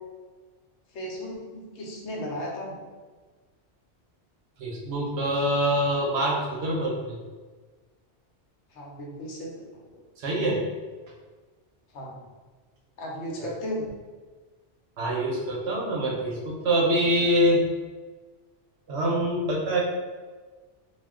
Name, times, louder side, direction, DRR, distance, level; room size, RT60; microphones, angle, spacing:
voice 1, 0.9-2.7 8.7-10.0 11.9-12.2 13.0-13.9, equal, 75° left, -2 dB, 0.9 m, -35 dB
voice 2, 4.6-7.2 10.2-10.6 13.4-13.5 15.0-17.6 18.9-19.8, equal, 70° right, -1 dB, 0.9 m, -25 dB
2.3 x 2.1 x 3.5 m, 1.4 s
omnidirectional pair, 1.2 m